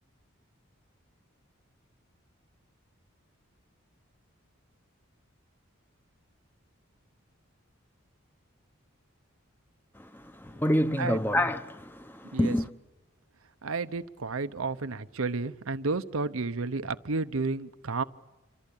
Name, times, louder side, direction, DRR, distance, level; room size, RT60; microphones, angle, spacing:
voice 1, 9.9-12.7, left 1 dB, 10° left, 0.9 m, -28 dB
voice 2, 13.6-18.0, right 3 dB, 75° right, 0.9 m, -31 dB
28.0 x 24.0 x 8.6 m
head